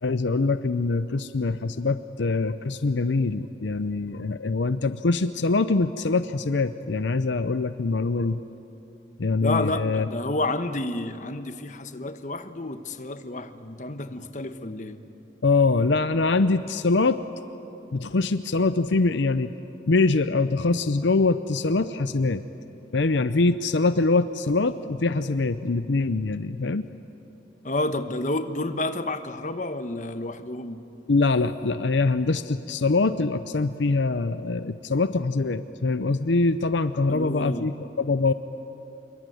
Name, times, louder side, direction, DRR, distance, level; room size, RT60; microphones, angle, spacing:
voice 1, 0.0-8.4 9.2-10.1 15.4-17.5 17.9-19.5 19.9-22.4 22.9-26.9 31.1-38.3, left 3 dB, 75° left, 12 dB, 0.6 m, -24 dB
voice 2, 9.4-15.0 27.6-30.8 37.1-37.7, left 2 dB, 40° left, 9 dB, 1.1 m, -30 dB
27.0 x 22.5 x 9.3 m, 2.9 s
head